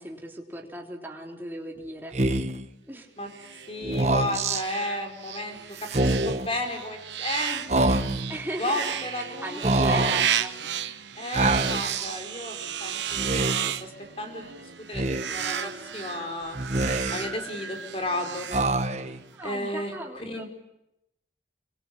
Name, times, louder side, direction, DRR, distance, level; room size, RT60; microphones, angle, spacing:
voice 1, 0.0-2.1 2.9-3.1 8.3-8.9 9.2-10.8 19.3-20.4, right 1 dB, 10° right, 1 dB, 3.6 m, -37 dB
Speech, 2.1-2.7 3.8-4.6 5.8-6.5 7.7-8.4 9.6-10.3 11.3-12.1 13.1-13.8 14.9-15.6 16.5-17.4 18.5-19.2, right 2 dB, 40° right, 1.3 m, -25 dB
sound 1, 3.3-19.2, right 9 dB, 90° right, 1.2 m, -33 dB
voice 2, 3.7-8.0 8.6-9.6 9.9-10.1 11.1-16.6 17.1-18.5 19.4-20.4, left 1 dB, 30° left, 5 dB, 4.8 m, -33 dB
26.0 x 25.0 x 9.0 m, 0.88 s
head